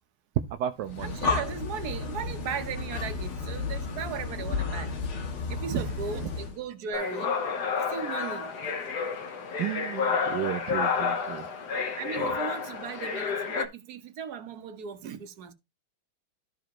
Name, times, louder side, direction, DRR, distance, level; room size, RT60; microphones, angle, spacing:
voice 1, 0.5-1.1 5.7-6.2 9.6-11.5 12.2-12.3, right 11 dB, 70° right, 1.0 m, -33 dB
Breathing, 0.8-6.6, left 4 dB, 80° left, 2.3 m, -32 dB
voice 2, 1.0-4.9 5.5-7.3 7.9-8.5 12.0-15.5, right 7 dB, 55° right, 1.3 m, -37 dB
sound 1, 6.9-13.7, left 5 dB, 55° left, 1.6 m, -30 dB
13.0 x 4.9 x 3.0 m
omnidirectional pair, 2.3 m